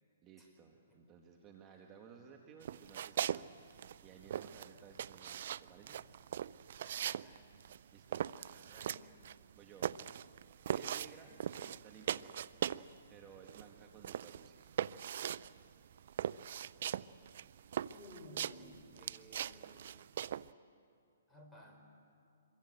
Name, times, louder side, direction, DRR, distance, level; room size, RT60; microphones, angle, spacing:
voice 1, 0.2-6.0 7.9-8.2 9.5-10.0 10.2-12.3 13.1-14.6, right 6 dB, 25° right, 2 dB, 2.0 m, -57 dB
sound 1, 2.6-3.4 3.7-12.9 13.2-20.5, right 10 dB, 60° right, 0.5 m, -40 dB
voice 2, 6.7-7.6 8.4-9.3 17.9-20.0 21.3-21.8, equal, 5° left, 0 dB, 5.1 m, -57 dB
26.5 x 23.0 x 8.1 m, 2.7 s
hypercardioid pair, 135°, 0 cm